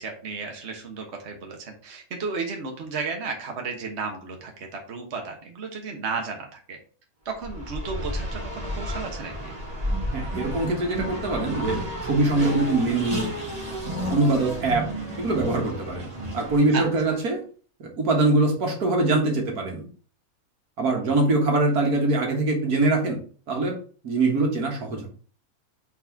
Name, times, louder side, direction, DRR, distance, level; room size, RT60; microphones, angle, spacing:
voice 1, 0.0-6.8 7.2-9.5 16.7-17.2, right 4 dB, 50° right, 2 dB, 1.4 m, -33 dB
Race car auto racing, 7.3-17.0, equal, 25° right, 1.9 m, -32 dB
voice 2, 10.1-13.3 14.1-14.9 15.2-17.4 17.8-19.9 20.8-23.2 23.5-23.8 24.0-25.1, right 2 dB, 80° right, 1 dB, 2.1 m, -23 dB
4.5 x 4.3 x 5.8 m, 0.41 s
omnidirectional pair, 1.6 m